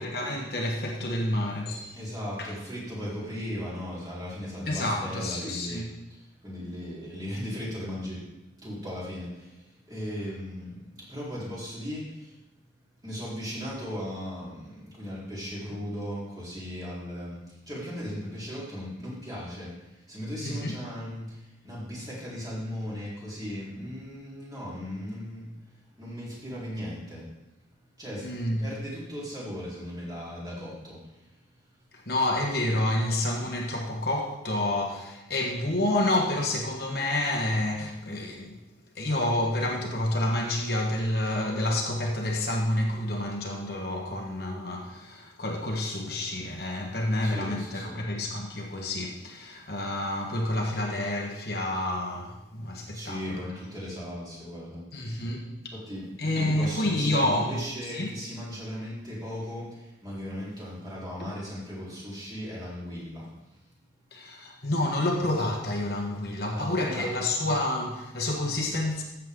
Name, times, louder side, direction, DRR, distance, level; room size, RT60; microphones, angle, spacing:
voice 1, 0.0-2.0 2.4-2.5 4.7-5.9 20.4-20.8 28.2-28.7 31.9-38.6 38.9-53.4 54.9-55.7 56.2-57.6 57.9-58.1 61.2-61.3 64.1-69.0, left 1 dB, 55° left, 0 dB, 1.4 m, -29 dB
voice 2, 1.9-5.8 6.1-8.3 8.6-12.4 13.0-25.6 26.0-27.3 28.0-28.3 28.6-31.4 47.2-48.0 52.9-55.3 55.7-63.6 66.5-67.1, equal, 20° right, -7 dB, 3.9 m, -37 dB
14.0 x 7.5 x 3.8 m, 0.96 s
head